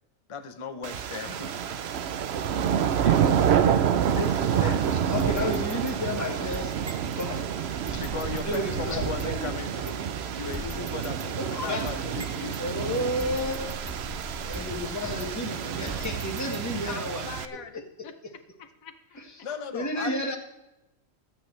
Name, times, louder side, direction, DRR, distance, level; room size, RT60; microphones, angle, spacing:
voice 1, 0.3-1.6 2.9-3.2 4.0-5.0 6.2-6.3 7.9-13.0 19.4-20.3, left 5 dB, 30° left, 7 dB, 0.8 m, -37 dB
sound 1, 0.8-17.5, right 8 dB, 60° right, 0.8 m, -28 dB
voice 2, 4.6-6.7 7.1-7.6 7.9-8.0 8.4-9.5 11.4-11.9 12.6-13.8 14.3-17.3 19.2-19.5 19.7-20.4, left 1 dB, 15° left, 1 dB, 1.5 m, -32 dB
sound 2, 5.2-7.3 7.9-9.5 9.9-10.0 10.5-12.6 13.2-15.5 15.9-16.9, right 1 dB, 15° right, 0.8 m, -40 dB
voice 3, 16.9-18.1 18.6-19.2, left 8 dB, 85° left, 9 dB, 1.3 m, -43 dB
23.0 x 8.7 x 3.3 m, 0.94 s
omnidirectional pair, 1.4 m